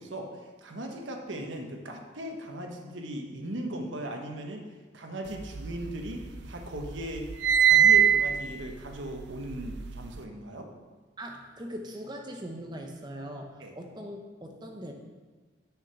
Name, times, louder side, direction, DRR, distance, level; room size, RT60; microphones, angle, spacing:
voice 1, 0.0-4.7 4.9-7.3 7.6-10.7 13.6-13.7, right 1 dB, 75° right, 2 dB, 1.2 m, -38 dB
sound 1, 5.4-6.5 6.8-10.2, right 9 dB, 60° right, 0.4 m, -23 dB
voice 2, 11.2-14.9, equal, 20° right, 2 dB, 0.9 m, -41 dB
6.4 x 6.2 x 6.8 m, 1.4 s
head